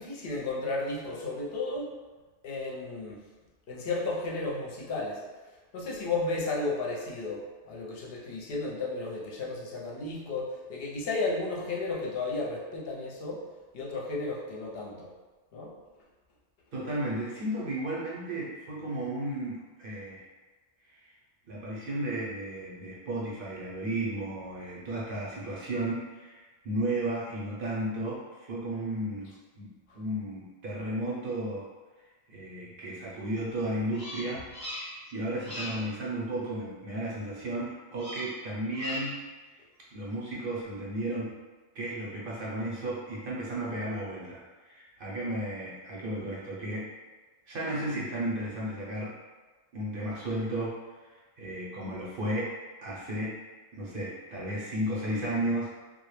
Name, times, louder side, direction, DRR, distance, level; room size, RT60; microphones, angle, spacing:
voice 1, 0.0-2.0 2.4-3.2 3.7-5.2 5.7-13.4 13.7-15.1 15.5-15.7, left 3 dB, 65° left, -4 dB, 0.7 m, -33 dB
voice 2, 16.7-20.2 20.9-21.0 21.5-31.7 32.3-39.2 39.9-41.4 41.7-46.9 47.5-49.1 49.7-50.8 51.4-52.6 52.8-53.4 53.7-55.8, right 1 dB, 60° right, -5 dB, 0.7 m, -34 dB
Bird vocalization bird call bird song, 33.9-35.1 35.4-35.9 37.9-38.4 38.7-39.3, left 1 dB, 15° left, 0.8 m, -39 dB
2.1 x 2.0 x 3.0 m, 1.3 s
omnidirectional pair, 1.2 m